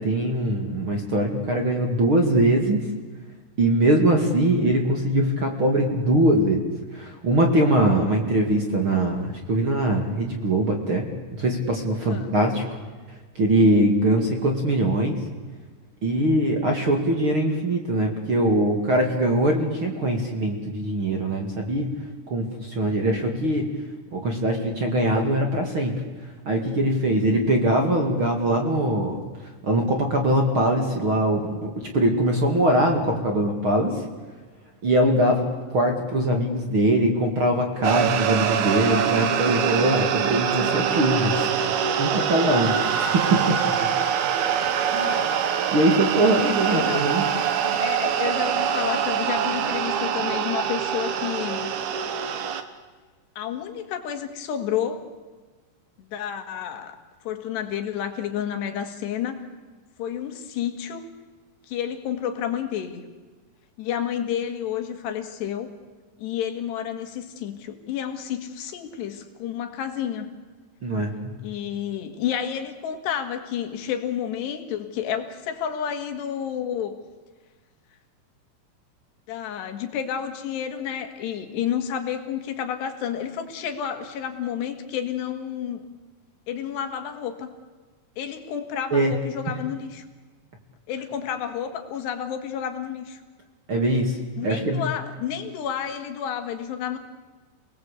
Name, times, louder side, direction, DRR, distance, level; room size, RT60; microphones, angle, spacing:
voice 1, 0.0-2.9 3.6-6.7 6.9-12.6 13.4-15.2 16.0-21.9 22.3-23.7 24.1-29.2 29.6-34.0 34.8-41.5 42.0-43.9 44.9-45.3 45.7-47.2 70.8-71.3 88.9-89.2 93.7-94.2 94.4-94.8, right 1 dB, 40° right, 3 dB, 2.3 m, -22 dB
voice 2, 12.0-12.4 46.4-47.1 47.8-51.7 53.4-55.1 56.1-57.0 57.3-59.5 60.0-61.1 61.7-63.1 63.8-65.7 66.2-70.3 71.4-77.0 79.3-85.9 86.5-87.5 88.2-90.1 90.9-93.2 94.4-97.0, left 9 dB, 75° left, 6 dB, 4.0 m, -30 dB
sound 1, 37.8-52.6, right 8 dB, 70° right, 3.2 m, -24 dB
29.0 x 19.0 x 8.3 m, 1.4 s
omnidirectional pair, 4.9 m